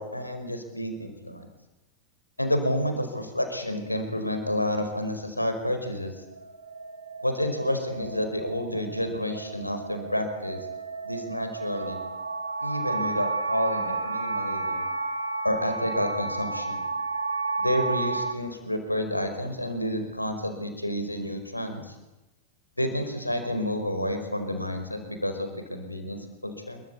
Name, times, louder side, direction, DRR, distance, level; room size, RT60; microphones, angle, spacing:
voice 1, 0.0-1.5 2.4-6.2 7.2-10.6 11.0-12.0 12.6-14.9 15.4-16.8 17.6-22.0 22.8-26.8, left 1 dB, 85° left, 6 dB, 5.1 m, -30 dB
sound 1, 5.5-18.3, right 3 dB, 75° right, 2.2 m, -32 dB
26.5 x 24.0 x 8.5 m, 1.0 s
figure-of-eight pair, 90°, 0 cm